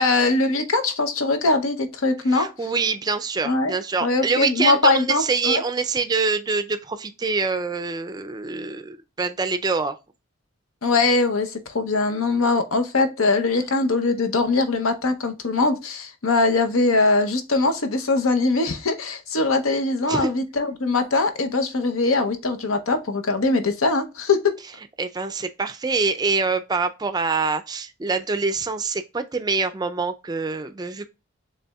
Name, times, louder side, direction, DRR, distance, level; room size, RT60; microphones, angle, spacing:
voice 1, 0.0-2.7 3.4-3.7 4.0-5.6 10.8-24.6, left 3 dB, 90° left, 0.8 m, -21 dB
voice 2, 2.3-10.0 20.1-20.3 25.0-31.1, right 4 dB, 20° right, 0.3 m, -25 dB
6.8 x 3.3 x 2.3 m
head